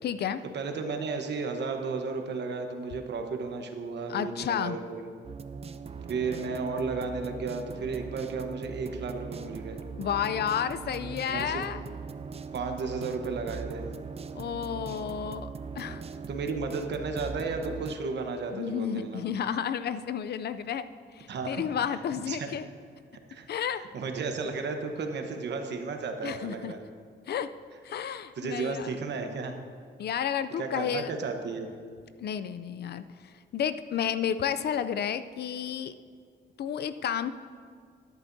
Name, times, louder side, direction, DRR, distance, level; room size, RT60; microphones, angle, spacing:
voice 1, 0.0-0.4 4.1-4.8 10.0-11.8 14.3-15.5 15.8-16.0 18.5-20.9 21.1-22.7 23.5-23.8 26.2-26.7 27.3-27.5 27.8-28.9 30.0-31.1 32.2-35.9 36.6-37.3, left 8 dB, 60° left, 12 dB, 0.4 m, -31 dB
voice 2, 0.5-5.1 6.1-9.8 11.3-11.6 12.5-13.9 16.3-19.2 21.3-21.6 22.3-22.5 23.3-23.5 23.8-26.8 28.4-29.5 30.6-31.7, right 4 dB, 65° right, 4 dB, 1.1 m, -33 dB
sound 1, 5.2-18.0, right 5 dB, 35° right, 0.4 m, -40 dB
13.0 x 11.0 x 2.7 m, 2.1 s
cardioid pair, 125°, 19 cm